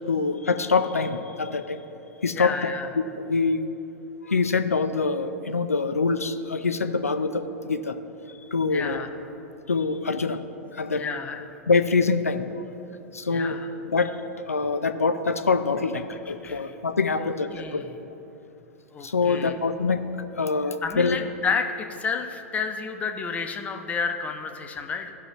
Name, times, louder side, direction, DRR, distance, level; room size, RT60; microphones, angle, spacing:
voice 1, 0.1-1.8 2.2-2.5 3.2-3.6 4.2-8.0 8.5-9.0 9.7-10.4 10.7-11.0 11.7-12.4 13.1-13.6 13.8-14.2 14.5-17.8 19.0-20.1 20.4-21.2, left 4 dB, 85° left, 9 dB, 0.4 m, -25 dB
voice 2, 2.3-2.9 8.7-9.1 11.0-11.4 13.3-13.7 16.1-16.7 17.2-17.9 18.9-19.5 20.8-25.1, left 5 dB, 20° left, 4 dB, 0.7 m, -31 dB
16.5 x 5.8 x 2.8 m, 3.0 s
figure-of-eight pair, 95°, 8 cm